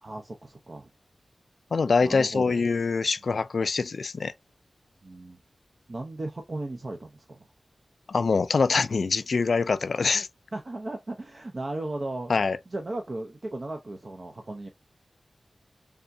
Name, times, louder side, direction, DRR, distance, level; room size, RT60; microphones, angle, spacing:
voice 1, 0.0-0.9 2.0-2.6 5.0-5.4 5.9-7.4 10.5-12.3 12.7-14.7, right 2 dB, 50° right, 0.6 m, -36 dB
voice 2, 1.7-4.3 8.1-10.3 12.3-12.6, left 4 dB, 80° left, 0.3 m, -24 dB
3.6 x 3.5 x 2.6 m
wide cardioid pair, 75°, 0 cm